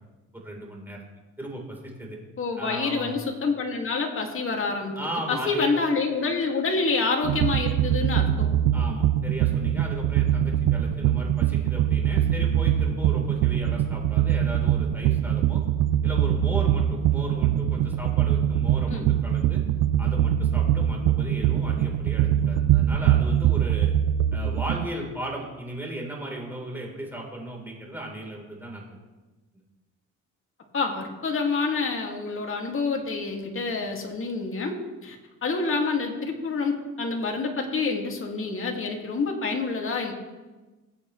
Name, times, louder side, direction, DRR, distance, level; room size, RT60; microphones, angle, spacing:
voice 1, 0.3-1.0 1.4-2.2 2.6-3.2 5.0-5.8 8.7-15.6 16.0-19.6 20.0-23.9 24.3-28.8, right 1 dB, 5° right, -1 dB, 3.9 m, -36 dB
voice 2, 2.4-5.0 5.3-8.5 18.9-19.1 30.7-34.7 35.0-35.2 35.4-40.1, left 4 dB, 45° left, 1 dB, 2.4 m, -27 dB
sound 1, 7.2-24.9, right 10 dB, 90° right, 0.6 m, -23 dB
20.5 x 8.4 x 3.3 m, 1.2 s
cardioid pair, 90°, 30 cm